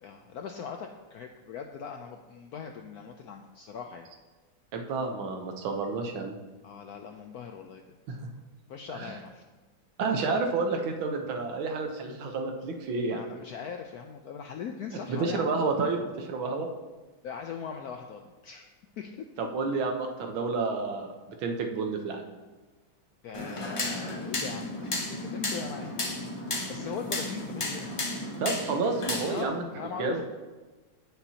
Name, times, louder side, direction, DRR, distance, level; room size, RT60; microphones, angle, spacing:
voice 1, 0.0-4.1 6.6-8.0 8.7-9.4 13.0-15.5 17.2-19.3 23.2-25.9 26.7-27.9 29.3-30.2, left 7 dB, 75° left, 4 dB, 0.8 m, -40 dB
voice 2, 4.7-6.4 8.1-8.3 8.9-9.1 10.0-13.2 15.1-16.7 19.4-21.1 21.4-22.2 28.4-29.7 30.0-30.2, right 4 dB, 80° right, 3 dB, 1.8 m, -30 dB
sound 1, 23.3-29.4, left 2 dB, 60° left, 0.3 m, -33 dB
16.5 x 6.0 x 2.8 m, 1.3 s
omnidirectional pair, 2.2 m